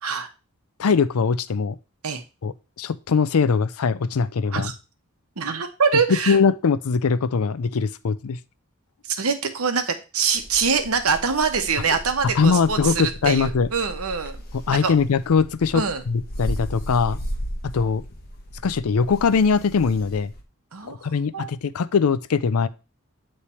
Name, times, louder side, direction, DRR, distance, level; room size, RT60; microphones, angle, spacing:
voice 1, 0.8-1.8 2.4-4.7 6.3-8.4 12.3-13.7 14.7-17.2 17.6-18.0 18.6-20.3 20.9-22.7, left 5 dB, 85° left, 13 dB, 0.5 m, -21 dB
voice 2, 5.4-6.4 9.0-14.4 14.8-14.9 15.7-16.0 20.7-21.5, right 5 dB, 80° right, 7 dB, 1.0 m, -24 dB
sound 1, 10.4-20.4, equal, 45° left, 1.1 m, -35 dB
8.4 x 3.3 x 4.3 m, 0.31 s
head